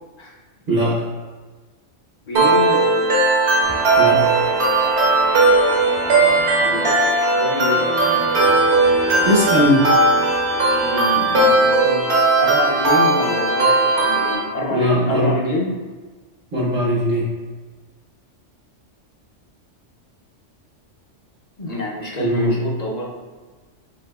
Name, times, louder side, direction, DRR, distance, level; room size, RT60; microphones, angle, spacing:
voice 1, 0.7-1.0 4.0-4.2 9.2-9.9 14.7-15.3 16.5-17.3 22.2-22.5, equal, 50° right, -5 dB, 0.9 m, -19 dB
voice 2, 2.3-2.9 6.6-7.0 7.3-7.8 10.8-15.7 21.6-23.1, left 1 dB, 40° left, -3 dB, 0.7 m, -27 dB
sound 1, 2.4-14.4, right 2 dB, 65° right, 1.2 m, -17 dB
Guitar, 3.6-12.2 12.6-12.9, right 1 dB, 25° right, 0.4 m, -32 dB
5.2 x 3.8 x 2.3 m, 1.3 s
omnidirectional pair, 1.3 m